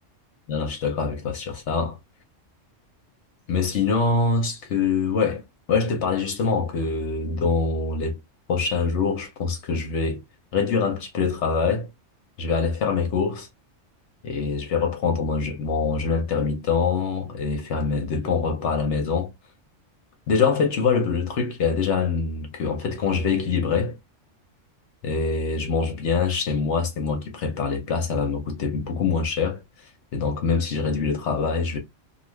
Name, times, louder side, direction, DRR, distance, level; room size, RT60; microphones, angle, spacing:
voice 1, 0.5-2.0 3.5-5.4 5.7-8.2 8.5-10.2 10.5-11.9 12.4-13.5 14.2-19.3 20.3-24.0 25.0-29.6 30.1-31.8, left 5 dB, 70° left, 1.0 m, -24 dB
2.6 x 2.4 x 3.0 m
omnidirectional pair, 1.3 m